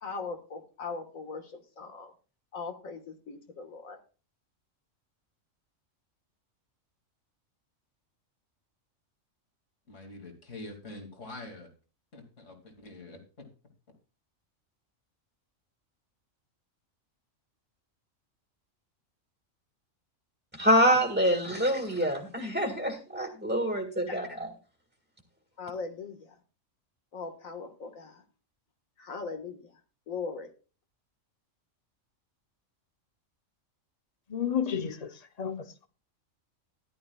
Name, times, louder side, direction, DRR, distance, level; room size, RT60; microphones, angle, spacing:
voice 1, 0.0-1.4 1.8-2.1 2.5-4.0 24.1-24.2 25.6-26.2 27.1-28.2 29.0-29.6 30.1-30.5, left 4 dB, 90° left, 2.0 m, -39 dB
voice 2, 9.9-11.7 12.1-13.5, left 2 dB, 65° left, 2.9 m, -45 dB
voice 3, 20.5-24.5, equal, 10° right, 1.9 m, -26 dB
voice 4, 34.3-35.9, left 8 dB, 35° left, 0.8 m, -32 dB
14.5 x 11.5 x 2.4 m
omnidirectional pair, 1.4 m